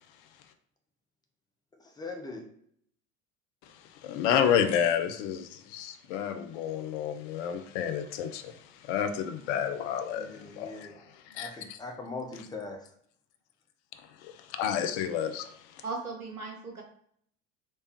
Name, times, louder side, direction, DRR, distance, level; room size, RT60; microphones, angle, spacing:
voice 1, 2.0-2.4 10.1-11.0 11.3-12.8, left 3 dB, 10° left, 0.8 m, -40 dB
voice 2, 3.6-10.9 11.3-11.8 14.2-15.8, left 8 dB, 55° left, 0.7 m, -30 dB
voice 3, 15.8-16.8, right 3 dB, 90° right, 0.7 m, -37 dB
4.5 x 3.3 x 2.9 m
figure-of-eight pair, 75°, 43 cm